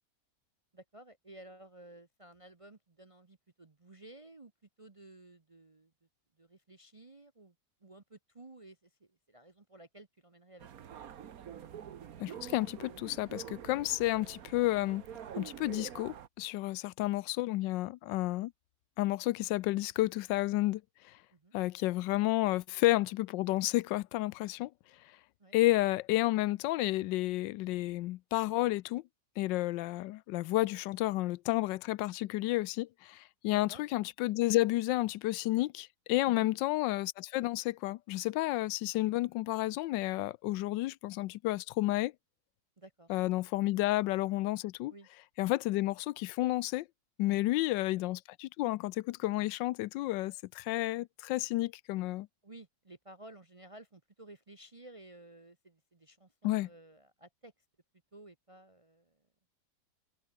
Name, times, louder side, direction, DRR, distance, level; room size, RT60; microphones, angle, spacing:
voice 1, 0.7-4.5 4.8-5.9 6.4-7.5 7.8-10.7 21.3-21.5 25.4-25.6 33.5-33.8 36.3-36.5 42.8-43.2 44.9-45.1 47.3-47.5 52.4-57.5 58.1-59.2, right 2 dB, 30° right, 0.6 m, -54 dB
sound 1, 10.6-16.3, right 9 dB, 60° right, 1.4 m, -46 dB
voice 2, 12.2-15.0 15.4-18.5 19.0-20.8 21.5-24.7 25.5-29.0 29.4-42.1 43.1-44.9 45.4-46.9 47.2-52.3 56.4-56.7, left 17 dB, 90° left, 1.3 m, -31 dB
omnidirectional pair, 1.9 m